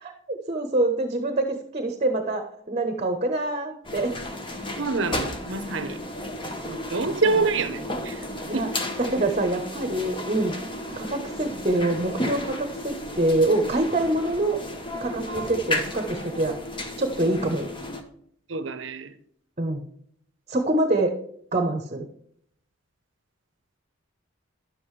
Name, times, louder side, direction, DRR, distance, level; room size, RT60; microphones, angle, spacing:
voice 1, 0.0-2.4 2.7-4.2 7.2-7.3 8.5-8.7 9.0-10.6 11.0-14.6 15.0-16.5 17.0-17.7 19.6-19.8 20.5-21.2 21.5-22.1, right 2 dB, 30° right, 0.9 m, -25 dB
sound 1, 3.8-18.0, left 1 dB, 25° left, 1.0 m, -33 dB
voice 2, 4.8-6.0 6.6-8.2 8.5-8.7 18.5-19.1, right 3 dB, 65° right, 0.7 m, -26 dB
10.5 x 7.6 x 3.2 m
head